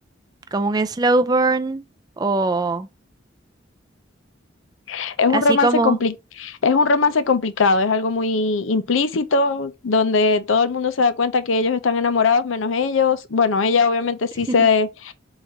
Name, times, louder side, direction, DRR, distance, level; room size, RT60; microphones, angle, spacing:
voice 1, 0.5-1.8 2.2-2.9 5.3-6.0 14.4-14.6, right 3 dB, 20° right, 0.3 m, -21 dB
voice 2, 4.9-15.1, left 4 dB, 85° left, 0.6 m, -20 dB
4.0 x 2.6 x 4.4 m
head